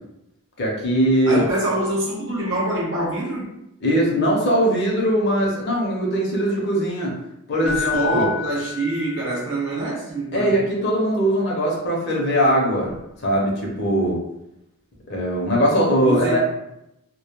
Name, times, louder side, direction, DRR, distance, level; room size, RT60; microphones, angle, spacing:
voice 1, 0.6-1.4 3.8-7.1 7.5-8.3 10.3-12.9 13.2-14.2 15.1-16.4, equal, 50° left, -2 dB, 0.6 m, -20 dB
voice 2, 1.2-3.5 7.6-10.5 16.0-16.4, right 1 dB, 55° right, -4 dB, 0.8 m, -25 dB
Keyboard (musical), 7.6-9.6 12.9-13.0, left 8 dB, 5° right, 0.4 m, -30 dB
2.1 x 2.1 x 2.9 m, 0.84 s
head